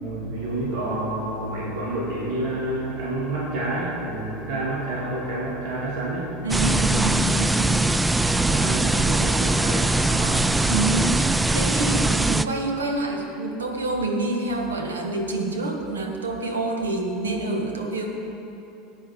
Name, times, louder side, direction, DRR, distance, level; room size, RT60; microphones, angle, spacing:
voice 1, 0.0-6.4 6.9-7.0 7.5-7.7 8.5-10.5, right 1 dB, 60° right, -5 dB, 2.3 m, -29 dB
voice 2, 6.4-7.6 10.7-18.1, right 2 dB, 85° right, 2 dB, 1.3 m, -27 dB
sound 1, 6.5-12.4, right 2 dB, 10° right, 0.3 m, -21 dB
16.0 x 8.8 x 3.6 m, 2.9 s
hypercardioid pair, 80°, 0 cm